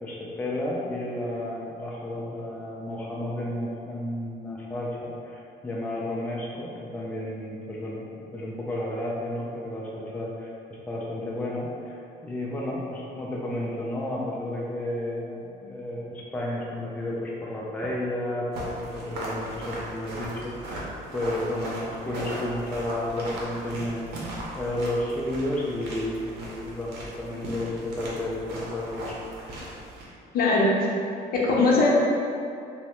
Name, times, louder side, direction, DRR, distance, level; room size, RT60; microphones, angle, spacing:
voice 1, 0.0-20.8 21.1-24.3 24.5-29.2, left 1 dB, 10° left, -4 dB, 0.4 m, -32 dB
sound 1, 18.5-30.0, right 1 dB, 75° right, 0.7 m, -38 dB
voice 2, 30.3-30.8 31.3-31.9, left 3 dB, 60° left, -3 dB, 0.6 m, -20 dB
3.1 x 2.0 x 2.9 m, 2.5 s
cardioid pair, 110°, 17 cm